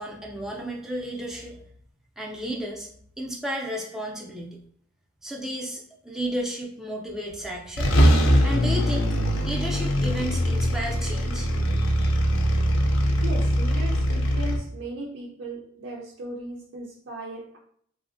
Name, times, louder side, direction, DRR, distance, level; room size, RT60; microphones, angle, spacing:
voice 1, 0.0-1.6 2.2-2.9 3.2-4.6 5.2-7.9 8.4-9.1 9.4-12.2, right 1 dB, ahead, 0.4 m, -33 dB
sound 1, 7.3-7.4 7.8-14.6, equal, 80° left, 0.5 m, -22 dB
voice 2, 13.2-17.6, right 2 dB, 75° right, 0.5 m, -37 dB
3.3 x 2.0 x 2.5 m
head